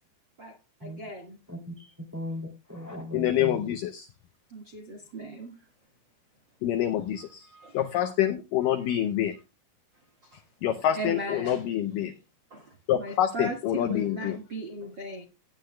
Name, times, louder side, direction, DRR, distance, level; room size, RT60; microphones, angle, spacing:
voice 1, 0.8-1.4 1.8-1.9 4.5-5.6 7.2-7.8 8.8-8.9 10.2-10.4 10.7-11.6 11.9-12.0 12.5-15.2, right 1 dB, 55° right, 1.3 m, -38 dB
voice 2, 1.5-3.7, left 1 dB, 5° right, 1.7 m, -38 dB
voice 3, 3.1-4.0 6.6-7.5 7.7-9.3 10.6-12.1 12.9-14.4, left 11 dB, 85° left, 1.9 m, -26 dB
18.0 x 9.7 x 2.2 m
omnidirectional pair, 4.7 m